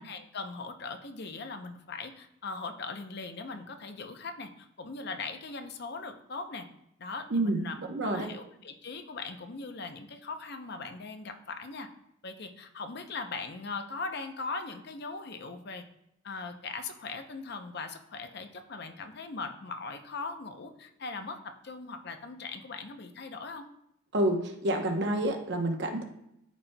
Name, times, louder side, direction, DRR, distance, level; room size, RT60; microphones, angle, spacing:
voice 1, 0.0-6.7 7.0-11.9 12.2-15.8 16.2-23.7, left 4 dB, 50° left, 7 dB, 0.6 m, -40 dB
voice 2, 7.3-8.3 24.1-26.0, right 1 dB, 55° right, 4 dB, 0.9 m, -28 dB
12.5 x 4.2 x 2.2 m, 0.80 s
head